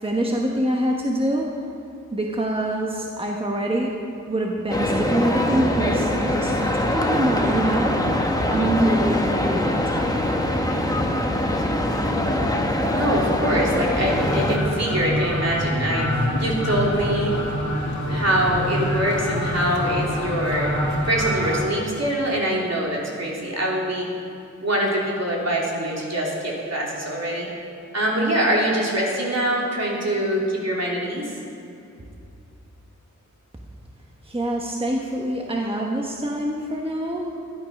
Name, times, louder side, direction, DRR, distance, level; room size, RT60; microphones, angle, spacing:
voice 1, 0.0-1.5 2.1-4.0 4.3-8.0 8.5-10.3 34.2-37.3, right 1 dB, 20° right, 0 dB, 1.2 m, -25 dB
sound 1, 4.7-14.6, left 1 dB, 10° left, 1.3 m, -23 dB
voice 2, 12.9-17.4 18.1-20.8 21.0-24.1 24.6-27.5 27.9-31.3, right 1 dB, 55° right, -3 dB, 3.3 m, -24 dB
sound 2, 14.2-21.7, left 1 dB, 65° left, 2.2 m, -26 dB
13.0 x 11.5 x 6.0 m, 2.6 s
wide cardioid pair, 75°, 31 cm